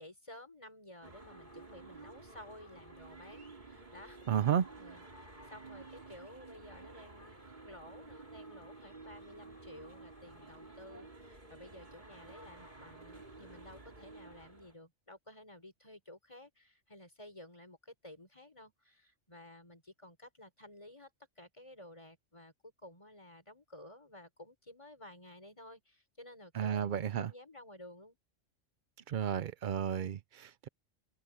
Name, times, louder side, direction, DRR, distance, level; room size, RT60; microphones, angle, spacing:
voice 1, 0.0-21.1 21.4-28.2, left 1 dB, 25° left, 5.0 m, -54 dB
sound 1, 1.0-14.7, right 3 dB, 35° right, 3.2 m, -52 dB
voice 2, 4.3-4.7 26.6-27.3 29.1-30.7, right 8 dB, 55° right, 0.6 m, -32 dB
open air
omnidirectional pair, 1.3 m